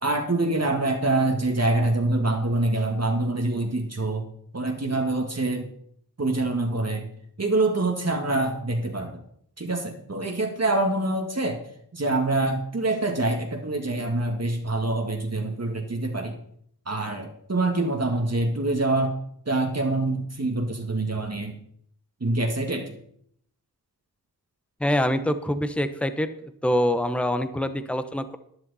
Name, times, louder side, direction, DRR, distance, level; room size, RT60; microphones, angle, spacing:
voice 1, 0.0-4.2 4.5-5.7 6.2-7.1 7.4-9.2 9.6-11.6 11.9-16.4 16.9-19.2 19.5-21.6 22.2-23.0, right 2 dB, 40° right, 2 dB, 1.8 m, -25 dB
voice 2, 24.8-26.3 26.6-28.4, left 1 dB, 5° left, 10 dB, 1.0 m, -25 dB
13.0 x 10.5 x 4.2 m, 0.67 s
wide cardioid pair, 55°, 38 cm